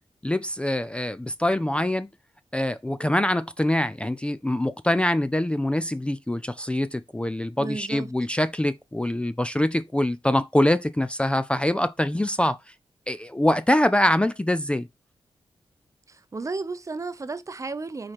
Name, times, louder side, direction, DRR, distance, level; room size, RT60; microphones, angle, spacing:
voice 1, 0.2-2.1 2.5-12.6 13.1-14.9, left 1 dB, 10° left, 0.4 m, -24 dB
voice 2, 7.6-8.1 16.1-18.1, right 3 dB, 30° right, 0.6 m, -33 dB
4.9 x 4.3 x 5.7 m
wide cardioid pair, 105°, 10 cm